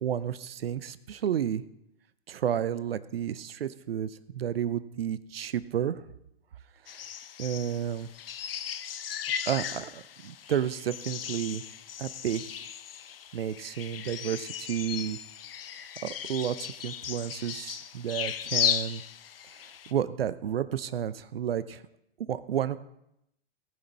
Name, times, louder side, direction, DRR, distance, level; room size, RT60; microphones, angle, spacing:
voice 1, 0.0-1.6 2.3-6.0 6.9-7.0 7.4-8.1 9.5-11.6 12.0-12.7 13.3-15.2 16.0-19.0 19.9-21.8 22.2-22.8, right 9 dB, 70° right, 15 dB, 0.7 m, -31 dB
sound 1, 6.9-19.9, left 9 dB, 65° left, 0.9 m, -36 dB
18.5 x 6.1 x 4.2 m, 0.80 s
figure-of-eight pair, 105°, 30 cm